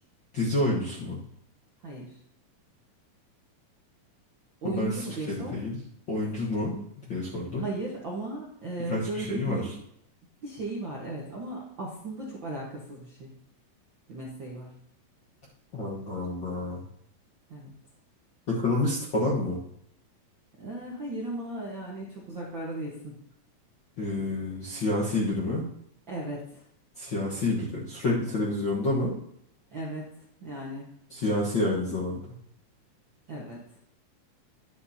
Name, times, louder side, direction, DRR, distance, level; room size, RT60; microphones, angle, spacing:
voice 1, 0.3-1.2 4.6-4.9 5.3-5.8 6.1-6.8 7.1-7.6 8.9-9.6 15.7-16.8 18.5-19.6 24.0-25.6 27.0-29.1 31.1-32.2, left 2 dB, 55° left, -5 dB, 1.3 m, -28 dB
voice 2, 1.8-2.2 4.6-5.6 7.5-9.7 10.4-13.3 14.1-14.7 17.5-17.7 20.6-23.1 26.1-26.6 29.7-30.1 30.4-30.9 33.3-33.6, right 2 dB, 55° right, -4 dB, 1.3 m, -36 dB
10.5 x 8.5 x 2.8 m, 0.73 s
omnidirectional pair, 4.0 m